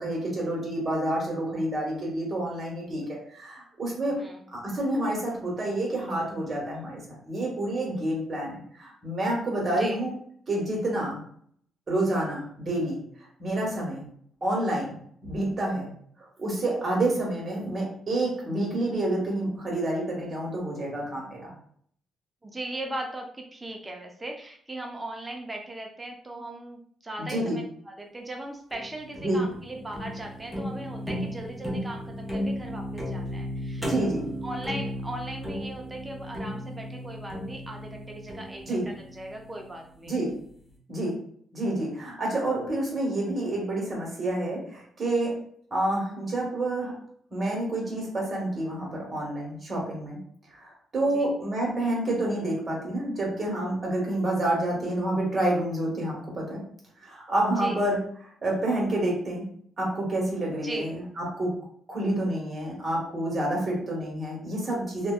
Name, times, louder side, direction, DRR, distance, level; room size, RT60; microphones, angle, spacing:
voice 1, 0.0-3.0 3.3-4.2 4.5-10.1 10.5-11.2 11.9-13.0 13.4-14.1 14.4-15.0 15.2-15.9 16.2-21.5 27.2-27.6 29.2-29.4 33.8-34.3 38.7-38.8 40.0-40.3 40.9-41.1 41.5-45.3 45.7-46.9 47.3-50.2 50.5-56.6 57.0-58.0 58.4-59.4 59.8-61.5 61.9-65.1, right 1 dB, 35° right, -2 dB, 1.3 m, -28 dB
voice 2, 9.6-10.0 22.4-33.9 34.4-40.1 51.0-51.3 57.6-57.8 60.6-60.9, right 1 dB, 20° right, 2 dB, 0.4 m, -38 dB
sound 1, 28.7-39.9, equal, 10° left, 0.8 m, -35 dB
2.6 x 2.2 x 2.3 m, 0.62 s
cardioid pair, 90°, 0 cm